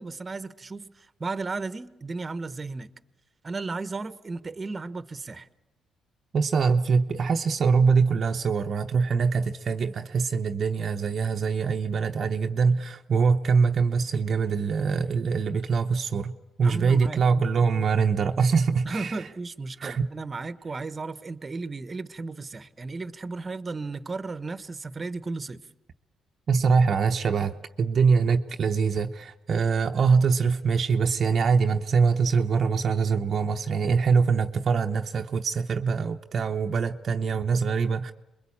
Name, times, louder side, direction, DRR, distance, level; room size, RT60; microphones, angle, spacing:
voice 1, 0.0-2.9 3.4-5.5 16.6-17.2 18.8-25.6, right 3 dB, 30° right, 1.1 m, -34 dB
voice 2, 6.3-16.3 16.6-19.2 19.8-20.1 26.5-38.1, right 5 dB, 50° right, 0.8 m, -23 dB
27.5 x 22.0 x 8.6 m
cardioid pair, 90°, 0 cm